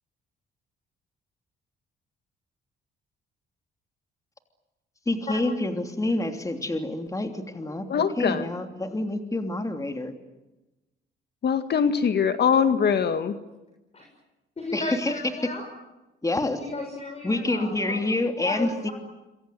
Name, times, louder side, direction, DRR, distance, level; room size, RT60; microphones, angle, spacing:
voice 1, 5.1-10.1 14.7-15.1 16.2-16.6 17.2-18.9, left 2 dB, 15° left, 5 dB, 3.1 m, -27 dB
voice 2, 7.9-8.4 11.4-13.3, left 7 dB, 55° left, 9 dB, 1.9 m, -22 dB
voice 3, 14.6-15.6 16.5-18.1 18.4-18.9, left 2 dB, 30° left, 1 dB, 7.1 m, -34 dB
27.5 x 23.0 x 9.3 m, 1.0 s
cardioid pair, 90°, 20 cm